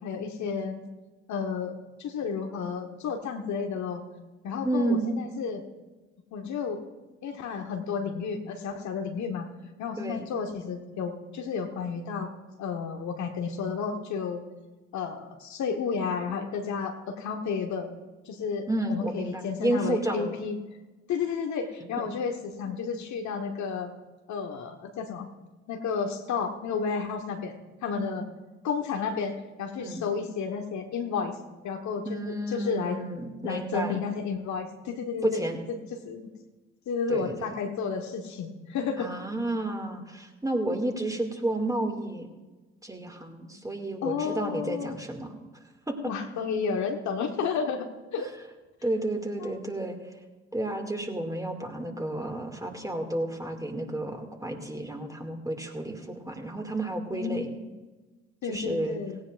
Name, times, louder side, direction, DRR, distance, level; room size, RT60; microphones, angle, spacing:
voice 1, 0.0-0.8 1.3-1.7 2.0-4.0 4.4-5.6 6.3-6.8 7.2-9.5 9.8-12.3 12.6-14.4 14.9-17.9 18.2-20.6 21.1-23.9 24.3-25.3 25.7-27.5 27.8-28.3 28.6-31.3 31.6-33.0 33.4-35.8 36.0-36.2 36.9-39.1 44.0-45.0 46.1-48.3 49.4-49.6 57.1-57.7 58.4-59.2, left 6 dB, 55° left, 4 dB, 1.4 m, -32 dB
voice 2, 4.6-5.1 10.0-10.3 18.7-20.4 22.0-22.1 27.9-28.3 29.8-30.0 32.0-34.0 35.2-35.6 37.1-37.5 39.0-42.3 42.8-45.4 45.9-46.0 48.8-50.0 50.5-57.5 58.5-59.0, right 1 dB, 10° right, 3 dB, 2.4 m, -31 dB
17.5 x 17.0 x 2.6 m, 1.2 s
figure-of-eight pair, 45°, 34 cm